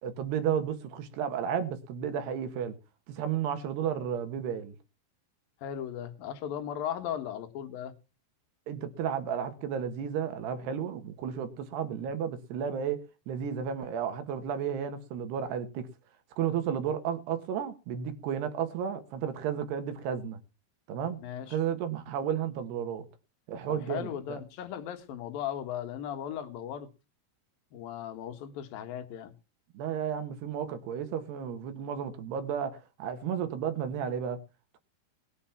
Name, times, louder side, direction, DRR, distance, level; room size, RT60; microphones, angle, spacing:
voice 1, 0.0-2.8 3.1-4.8 8.7-15.9 16.4-20.4 20.9-21.2 21.5-23.1 23.5-24.4 29.7-34.4, right 8 dB, 65° right, 3.2 m, -33 dB
voice 2, 5.6-7.9 21.2-21.6 23.7-26.9 27.7-29.3, left 10 dB, 60° left, 2.7 m, -37 dB
20.5 x 8.5 x 5.9 m
omnidirectional pair, 5.9 m